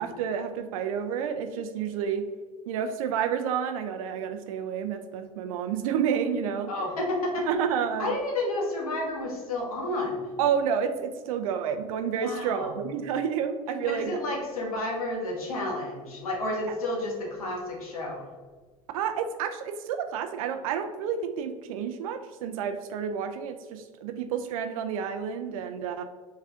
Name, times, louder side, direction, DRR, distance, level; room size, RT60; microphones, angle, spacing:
voice 1, 0.0-2.3 2.7-6.7 7.5-8.2 10.4-14.2 18.9-26.0, right 7 dB, 75° right, 7 dB, 0.4 m, -30 dB
voice 2, 6.7-7.5 8.0-10.3 12.2-12.8 13.8-18.3, left 1 dB, 90° left, -2 dB, 1.2 m, -31 dB
3.6 x 3.2 x 3.5 m, 1.4 s
hypercardioid pair, 80°, 18 cm